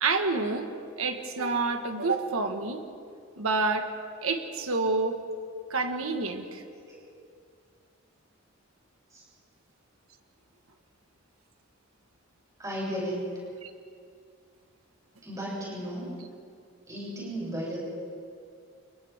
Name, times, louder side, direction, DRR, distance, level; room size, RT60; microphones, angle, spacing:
voice 1, 0.0-0.7 1.0-2.8 3.4-3.9 4.2-5.2 5.7-6.6 13.6-13.7, right 3 dB, 85° right, 5 dB, 1.6 m, -28 dB
voice 2, 12.6-13.4 15.2-16.1 16.9-17.8, equal, 15° right, -6 dB, 7.6 m, -34 dB
29.5 x 29.0 x 3.7 m, 2.3 s
head